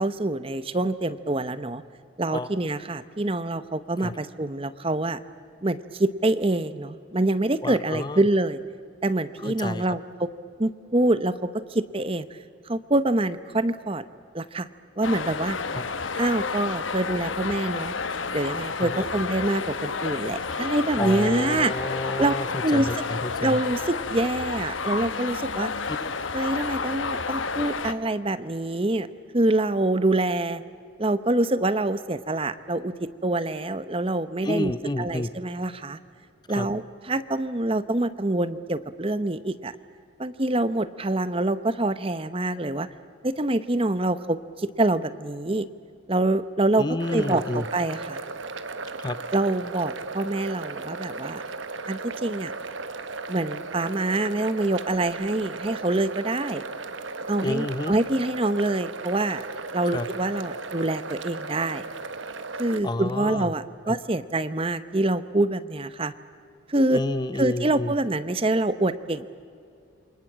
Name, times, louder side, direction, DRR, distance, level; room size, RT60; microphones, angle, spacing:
voice 1, 0.0-1.8 2.2-5.2 5.6-8.6 9.0-10.3 10.6-12.4 12.7-14.0 14.3-14.7 15.0-15.6 16.2-18.0 18.3-21.7 22.2-22.3 22.6-22.9 23.4-25.7 26.3-29.1 29.3-30.6 31.0-32.9 33.2-36.0 36.5-39.7 40.2-42.9 43.2-45.7 46.1-48.2 49.3-51.4 51.9-52.5 53.3-56.6 57.3-59.4 59.7-61.9 62.6-66.1 66.7-67.0 67.4-69.3, right 2 dB, 30° right, 13 dB, 0.8 m, -25 dB
voice 2, 7.6-8.2 9.4-9.9 15.7-15.8 18.8-19.1 21.0-23.6 25.9-26.1 34.4-35.3 36.5-36.7 46.8-47.7 49.0-49.2 57.4-57.9 59.9-60.1 62.8-63.5 63.9-64.0 66.9-67.9, left 2 dB, 20° left, 13 dB, 0.6 m, -30 dB
sound 1, 15.0-27.9, left 4 dB, 80° left, 1.2 m, -30 dB
sound 2, 47.0-62.8, right 3 dB, 75° right, 1.2 m, -36 dB
28.0 x 24.5 x 7.5 m, 2.3 s
head